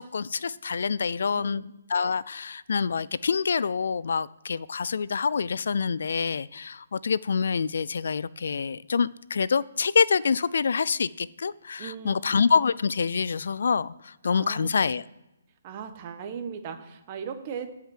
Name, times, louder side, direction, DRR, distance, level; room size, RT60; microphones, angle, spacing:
voice 1, 0.0-15.0, left 5 dB, 65° left, 19 dB, 0.4 m, -26 dB
voice 2, 1.3-1.6 11.8-12.2 14.2-15.0 15.6-17.7, right 7 dB, 30° right, 7 dB, 1.3 m, -38 dB
12.5 x 5.7 x 7.6 m, 0.95 s
hypercardioid pair, 165°, 0 cm